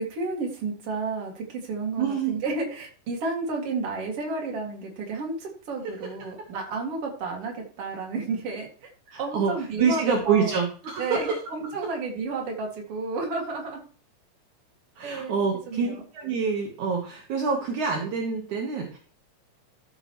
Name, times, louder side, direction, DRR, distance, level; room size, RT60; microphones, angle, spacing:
voice 1, 0.0-8.9 9.2-10.5 11.0-13.8 15.0-15.4 15.7-16.0, right 3 dB, 45° right, 0 dB, 2.9 m, -31 dB
voice 2, 2.0-2.4 9.1-9.5 9.8-11.3 15.0-19.0, right 5 dB, 65° right, 1 dB, 2.6 m, -26 dB
13.5 x 6.9 x 3.1 m, 0.42 s
omnidirectional pair, 3.8 m